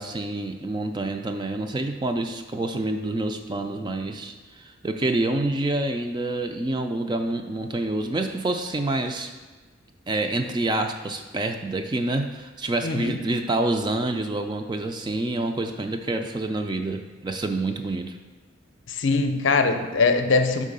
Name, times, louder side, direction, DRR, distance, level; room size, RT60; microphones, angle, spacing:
voice 1, 0.0-9.3 10.1-18.2, right 2 dB, 20° right, 5 dB, 0.3 m, -27 dB
voice 2, 12.8-13.2 18.9-20.6, left 4 dB, 65° left, 6 dB, 0.5 m, -22 dB
5.5 x 3.7 x 5.3 m, 1.3 s
head